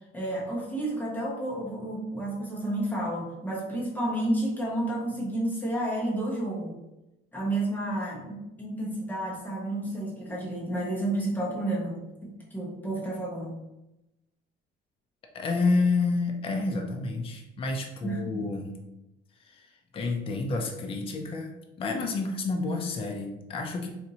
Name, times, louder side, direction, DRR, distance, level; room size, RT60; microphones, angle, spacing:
voice 1, 0.1-6.7 7.3-13.6 18.0-18.5, right 1 dB, 10° left, -5 dB, 0.9 m, -31 dB
voice 2, 15.3-18.7 19.4-23.9, left 3 dB, 25° left, 3 dB, 0.4 m, -29 dB
4.2 x 2.5 x 2.7 m, 0.94 s
cardioid pair, 170°, 21 cm